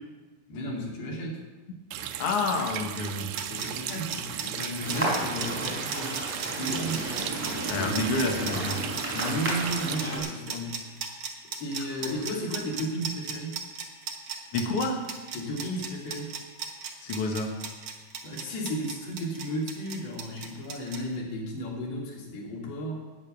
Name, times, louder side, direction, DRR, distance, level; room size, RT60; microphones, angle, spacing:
voice 1, 0.5-1.4 3.5-7.1 7.7-8.1 9.1-11.2 11.6-13.6 15.3-16.4 18.2-23.0, equal, 90° left, -2 dB, 4.6 m, -34 dB
Water tap faucet, 1.9-10.0, right 11 dB, 80° right, 2.1 m, -36 dB
voice 2, 2.2-3.3 7.6-8.8 14.5-15.0 17.0-17.5, left 3 dB, 55° left, 2 dB, 1.7 m, -28 dB
sound 1, 3.1-21.0, right 7 dB, 60° right, 1.7 m, -36 dB
sound 2, 4.8-10.2, right 1 dB, 5° right, 3.8 m, -32 dB
11.0 x 9.4 x 7.0 m, 1.2 s
omnidirectional pair, 4.5 m